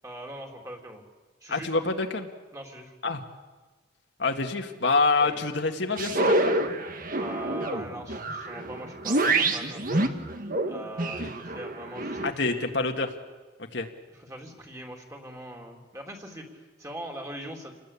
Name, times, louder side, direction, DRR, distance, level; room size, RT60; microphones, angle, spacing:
voice 1, 0.0-1.0 1.4-1.7 2.5-2.9 5.2-5.4 7.2-9.8 10.7-12.8 14.1-17.7, right 1 dB, 15° right, 1 dB, 3.4 m, -41 dB
voice 2, 1.5-2.3 3.0-3.2 4.2-6.6 11.2-11.3 12.2-13.1 13.7-13.9, left 3 dB, 65° left, 4 dB, 2.0 m, -26 dB
sound 1, 6.0-12.3, right 2 dB, 45° right, 1.7 m, -27 dB
28.5 x 20.0 x 8.6 m, 1.3 s
head